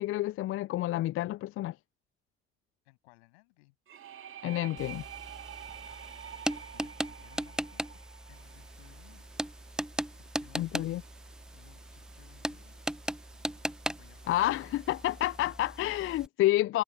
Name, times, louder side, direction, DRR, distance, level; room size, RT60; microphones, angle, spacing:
voice 1, 0.0-1.7 4.4-5.0 10.6-11.0 14.3-16.8, left 15 dB, 40° left, 0.4 m, -29 dB
voice 2, 2.8-3.8 5.7-8.0 8.3-9.3 10.2-11.1 11.5-13.0 14.0-14.5 15.4-15.6, left 25 dB, 75° left, 7.2 m, -61 dB
sound 1, 3.9-9.5, right 9 dB, 40° right, 2.0 m, -47 dB
sound 2, 4.8-16.3, right 1 dB, ahead, 0.8 m, -39 dB
Chirp tweet, 8.3-15.5, right 28 dB, 75° right, 4.6 m, -62 dB
hypercardioid pair, 60°, 33 cm